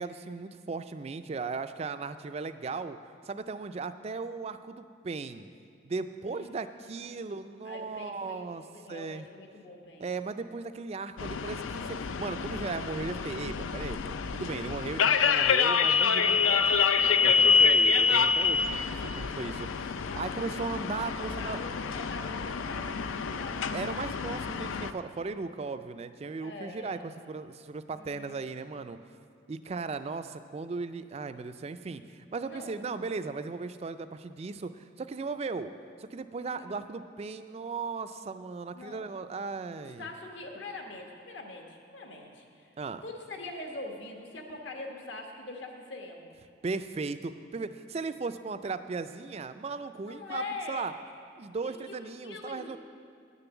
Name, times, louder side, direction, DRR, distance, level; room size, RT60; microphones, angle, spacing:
voice 1, 0.0-3.0 3.2-5.5 5.8-8.6 8.9-9.3 10.0-16.6 17.2-21.6 23.7-27.0 27.3-29.0 29.5-35.7 36.0-40.1 42.8-43.0 46.6-50.4 50.7-50.9 51.4-52.8, right 4 dB, 30° right, 11 dB, 0.3 m, -37 dB
voice 2, 6.2-7.2 7.6-10.1 16.2-17.2 20.1-20.7 21.3-23.7 26.4-27.1 27.9-28.4 32.4-32.8 36.4-36.8 38.7-39.1 39.7-42.7 43.0-46.3 50.1-50.9 51.6-52.8, left 2 dB, 65° left, 2 dB, 1.3 m, -44 dB
sound 1, 11.2-24.9, left 5 dB, 80° left, 0.4 m, -27 dB
9.8 x 6.8 x 7.1 m, 2.3 s
head